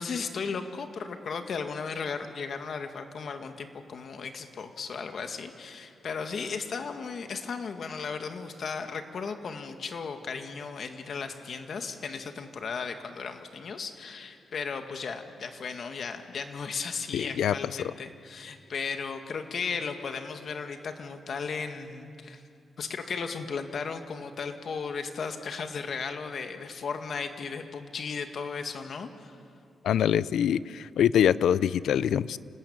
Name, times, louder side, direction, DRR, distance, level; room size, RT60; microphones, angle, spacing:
voice 1, 0.0-22.4 22.8-29.4, left 5 dB, 60° left, 6 dB, 2.1 m, -35 dB
voice 2, 17.1-17.5 29.8-32.4, left 9 dB, 90° left, 18 dB, 0.6 m, -24 dB
28.5 x 19.0 x 9.0 m, 2.5 s
cardioid pair, 115°, 0 cm